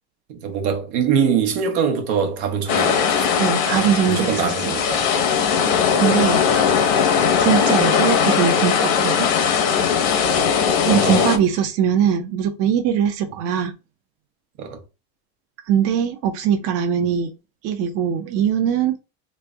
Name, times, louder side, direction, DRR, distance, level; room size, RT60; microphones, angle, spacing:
voice 1, 0.3-5.1 10.3-10.5 10.9-11.4 14.6-14.8, right 7 dB, 85° right, 1.1 m, -24 dB
sound 1, 2.7-11.4, left 7 dB, 75° left, 1.0 m, -19 dB
voice 2, 3.4-4.5 6.0-6.4 7.4-9.3 10.9-13.7 15.7-17.3 17.6-19.0, right 8 dB, 50° right, 0.6 m, -21 dB
3.2 x 2.5 x 3.4 m
supercardioid pair, 135°, 32 cm